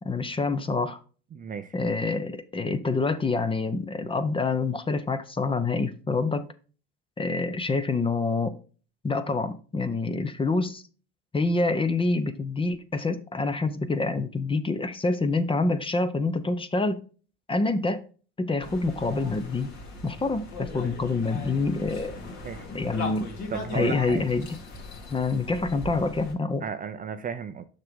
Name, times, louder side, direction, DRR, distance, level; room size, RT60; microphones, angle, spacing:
voice 1, 0.0-1.0 1.7-6.5 7.2-8.5 9.0-10.8 11.3-17.0 17.5-18.1 18.4-19.7 20.0-22.2 22.7-23.3 23.7-24.6 25.1-26.6, left 3 dB, 15° left, 0.7 m, -26 dB
voice 2, 1.3-1.7 22.4-22.7 23.5-24.2 26.6-27.7, right 7 dB, 25° right, 0.5 m, -34 dB
sound 1, 18.6-26.3, left 2 dB, 55° left, 2.5 m, -38 dB
6.5 x 5.8 x 3.6 m
hypercardioid pair, 85°, 32 cm